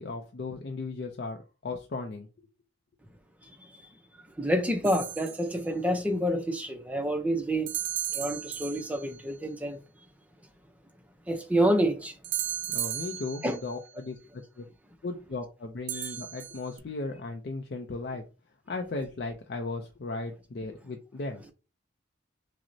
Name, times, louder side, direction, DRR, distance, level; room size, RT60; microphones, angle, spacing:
voice 1, 0.0-2.3 12.7-14.7 15.0-18.2 18.7-21.4, left 3 dB, 55° left, 0.4 m, -36 dB
voice 2, 4.4-7.7 8.1-9.8 11.3-12.2 13.4-13.6 15.9-16.1, equal, 10° right, 0.5 m, -28 dB
sound 1, 4.8-5.6 7.7-9.2 12.2-13.7 15.9-16.8, right 12 dB, 75° right, 0.4 m, -35 dB
5.9 x 2.0 x 2.6 m
head